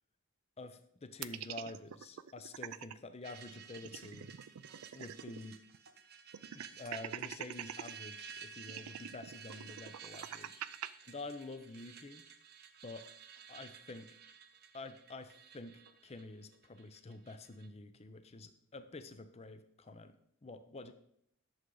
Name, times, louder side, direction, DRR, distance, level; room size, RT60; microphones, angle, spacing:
voice 1, 0.6-4.4 4.9-5.6 6.7-10.7 11.1-12.2 12.8-13.0 13.5-14.1 14.7-20.1 20.4-20.9, left 2 dB, 30° left, 10 dB, 0.6 m, -48 dB
sound 1, 1.2-2.9 3.3-3.4 3.7-5.5 5.7-5.8 6.3-7.9 8.6-10.9, right 10 dB, 75° right, 0.4 m, -44 dB
sound 2, 3.2-17.7, right 7 dB, 45° right, 0.7 m, -53 dB
11.5 x 6.9 x 3.8 m, 0.70 s
head